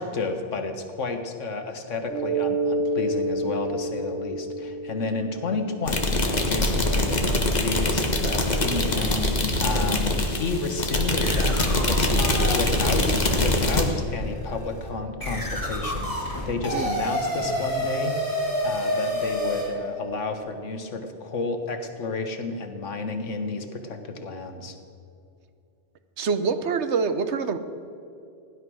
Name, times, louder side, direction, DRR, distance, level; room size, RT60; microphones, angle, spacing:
voice 1, 0.0-7.3 7.6-13.1 13.4-24.7, left 3 dB, 85° left, 6 dB, 1.6 m, -31 dB
Mallet percussion, 2.0-6.5, right 1 dB, 90° right, 4.3 m, -29 dB
sound 1, 5.9-13.8, left 1 dB, 35° left, 1.6 m, -23 dB
sound 2, 8.8-10.0 10.6-10.7 11.2-19.7, left 1 dB, 15° left, 3.5 m, -30 dB
voice 2, 26.2-27.6, right 5 dB, 70° right, 10 dB, 1.1 m, -25 dB
16.0 x 11.0 x 6.3 m, 2.6 s
omnidirectional pair, 1.2 m